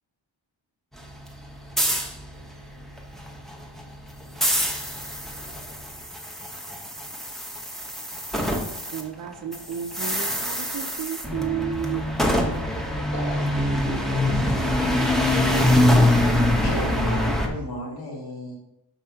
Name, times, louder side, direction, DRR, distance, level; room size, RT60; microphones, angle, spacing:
sound 1, 0.9-9.0 9.3-17.5, left 1 dB, ahead, 0.8 m, -24 dB
voice 1, 8.9-12.1, right 9 dB, 45° right, 6 dB, 0.5 m, -32 dB
voice 2, 12.7-14.8 15.2-16.2, right 1 dB, 35° left, -1 dB, 1.5 m, -37 dB
voice 3, 16.6-18.6, left 1 dB, 50° left, -3 dB, 2.1 m, -33 dB
5.5 x 4.3 x 4.5 m, 0.82 s
wide cardioid pair, 120°, 47 cm